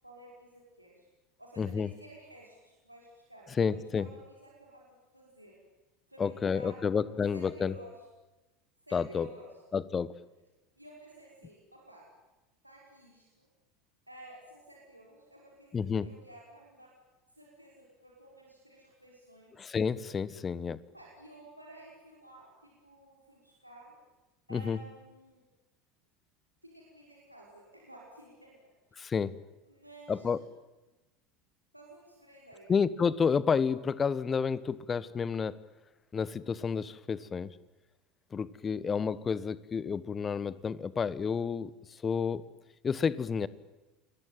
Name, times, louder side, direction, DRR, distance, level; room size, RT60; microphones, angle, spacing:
voice 1, 0.0-1.1 1.4-5.6 6.1-8.0 8.9-9.5 10.8-12.1 12.6-13.5 14.1-16.9 17.4-19.6 20.9-23.9 24.5-25.4 26.6-28.6 28.9-29.0 29.7-30.4 31.7-32.8, right 1 dB, 90° right, -3 dB, 5.7 m, -53 dB
voice 2, 1.6-1.9 3.6-4.1 6.2-7.7 8.9-9.3 9.7-10.1 15.7-16.1 19.6-20.8 24.5-24.8 29.0-29.3 30.1-30.4 32.7-35.6 36.1-37.5 38.3-41.7 42.0-42.4 42.8-43.5, left 6 dB, 25° left, 18 dB, 1.3 m, -30 dB
29.0 x 21.5 x 9.3 m, 1.1 s
figure-of-eight pair, 75°, 0 cm